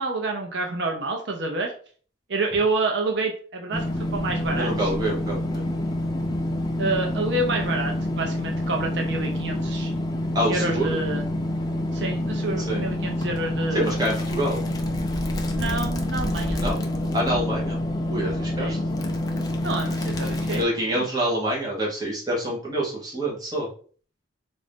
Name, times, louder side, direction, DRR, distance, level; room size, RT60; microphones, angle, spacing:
voice 1, 0.0-1.7 2.3-4.9 6.8-9.9 10.5-11.3 11.9-13.9 15.5-16.6 18.6-18.8 19.6-21.0, right 3 dB, 70° right, 2 dB, 0.6 m, -28 dB
sound 1, 3.7-20.6, left 1 dB, 20° left, 0.4 m, -27 dB
voice 2, 4.6-5.6 10.3-11.0 12.6-12.8 13.7-14.6 16.6-16.8 17.1-17.8 18.1-18.8 20.5-23.7, right 1 dB, 20° right, -4 dB, 1.2 m, -26 dB
3.8 x 2.5 x 3.4 m, 0.43 s
head